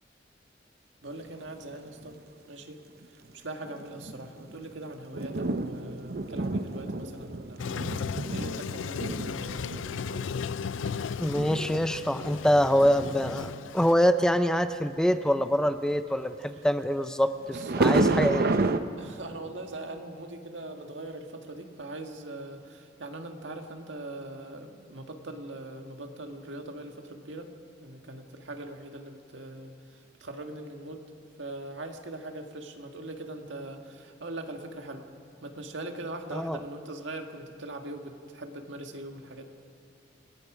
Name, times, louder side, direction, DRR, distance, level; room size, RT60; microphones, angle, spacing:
voice 1, 1.0-2.2 2.5-2.8 3.3-7.6 8.3-9.7 17.5-18.7 19.0-27.5 27.8-29.7 30.2-31.0 31.4-35.1 35.4-39.5, right 2 dB, 75° right, 4 dB, 1.8 m, -41 dB
sound 1, 1.5-1.6 2.0-2.2 3.0-3.1 3.7-13.9 17.5-18.8, right 2 dB, 55° right, 0.8 m, -30 dB
Toilet flush, 7.6-13.9, left 6 dB, 80° left, 0.4 m, -35 dB
voice 2, 11.2-18.4 36.3-36.6, equal, 5° left, 10 dB, 0.5 m, -25 dB
28.5 x 20.5 x 5.0 m, 2.4 s
head